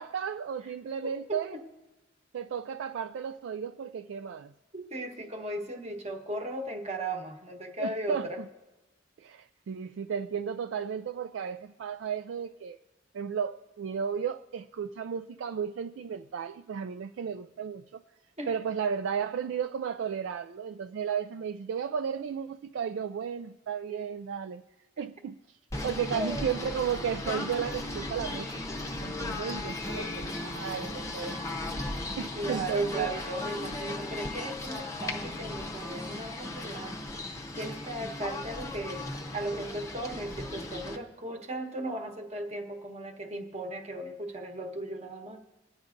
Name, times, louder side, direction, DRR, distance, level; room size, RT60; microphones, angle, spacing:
voice 1, 0.0-1.5 2.3-4.5 7.8-8.5 9.2-12.8 13.1-18.0 18.5-24.6 25.0-25.4 25.8-28.6 29.0-31.4 32.2-33.1, right 7 dB, 70° right, 0.3 m, -34 dB
voice 2, 1.0-1.6 4.7-8.4 18.4-18.5 26.1-26.5 32.3-37.0 37.5-45.4, right 1 dB, 35° right, 1.1 m, -36 dB
Singing / Bird, 25.7-41.0, left 2 dB, 15° left, 0.7 m, -36 dB
26.0 x 9.6 x 2.6 m
head